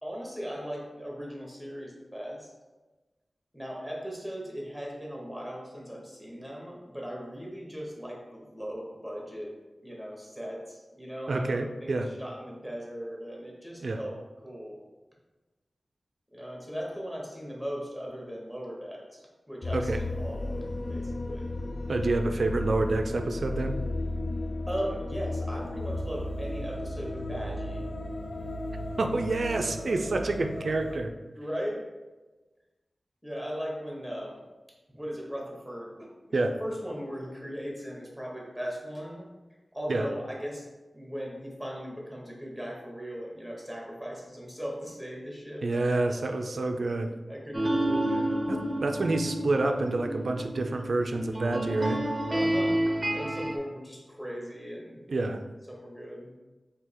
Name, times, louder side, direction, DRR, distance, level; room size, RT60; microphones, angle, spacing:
voice 1, 0.0-2.5 3.5-9.5 9.8-14.8 16.3-21.5 24.7-27.8 31.3-31.9 33.2-34.4 34.9-39.3 39.7-40.7 40.9-45.9 46.1-46.5 47.3-48.4 52.3-52.8 53.1-55.0 55.7-56.3, equal, 5° left, -2 dB, 1.2 m, -38 dB
voice 2, 11.3-12.1 13.8-14.0 19.7-20.0 21.9-23.7 29.0-31.1 36.3-36.5 39.9-40.1 45.6-47.1 48.5-52.0 55.1-55.4, right 2 dB, 75° right, 6 dB, 0.4 m, -28 dB
sound 1, 19.6-31.0, left 1 dB, 65° left, 0.5 m, -34 dB
sound 2, 47.5-53.6, right 1 dB, 25° right, 0.6 m, -29 dB
3.7 x 2.8 x 4.5 m, 1.2 s
wide cardioid pair, 65°, 0 cm